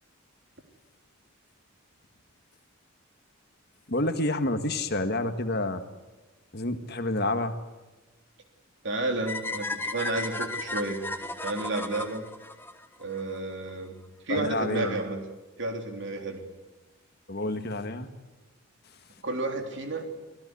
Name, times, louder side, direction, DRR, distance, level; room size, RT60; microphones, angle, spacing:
voice 1, 3.9-5.8 6.5-7.6 14.3-15.0 17.3-18.1, left 2 dB, 45° left, 8 dB, 1.7 m, -29 dB
voice 2, 8.8-11.0 11.4-12.3 13.0-13.9 14.2-15.2 15.6-16.5 19.2-20.1, right 2 dB, 55° right, 4 dB, 3.5 m, -31 dB
sound 1, 9.3-13.4, left 2 dB, 10° left, 1.2 m, -35 dB
25.5 x 17.0 x 9.9 m, 1.2 s
head